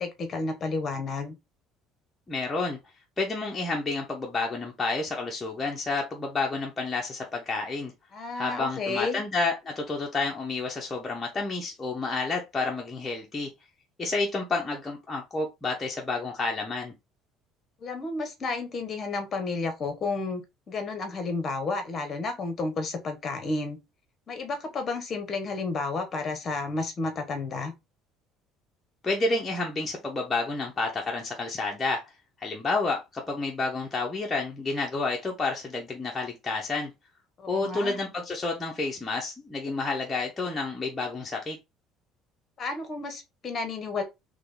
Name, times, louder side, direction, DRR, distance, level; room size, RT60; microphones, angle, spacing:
voice 1, 0.0-1.3 8.1-9.2 17.8-20.4 20.7-23.8 24.3-27.7 37.4-38.0 42.6-44.0, left 3 dB, 35° left, 1.3 m, -31 dB
voice 2, 2.3-2.8 3.2-7.9 8.4-13.5 14.0-16.9 29.0-32.0 32.4-36.9 37.5-41.6, left 3 dB, 15° left, 0.9 m, -30 dB
3.8 x 3.4 x 3.8 m
cardioid pair, 140°, 0 cm